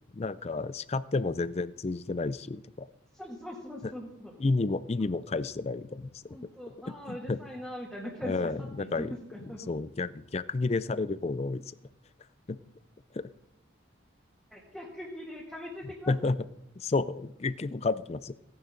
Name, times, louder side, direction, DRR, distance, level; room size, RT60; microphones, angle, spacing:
voice 1, 0.1-2.9 4.4-6.1 6.9-7.4 8.2-11.6 12.5-12.6 13.1-13.3 16.1-16.4 16.8-18.3, left 3 dB, 35° left, 16 dB, 0.4 m, -31 dB
voice 2, 3.1-4.3 6.3-9.7 14.5-16.4, equal, ahead, -5 dB, 2.1 m, -41 dB
17.0 x 11.0 x 3.9 m, 0.82 s
head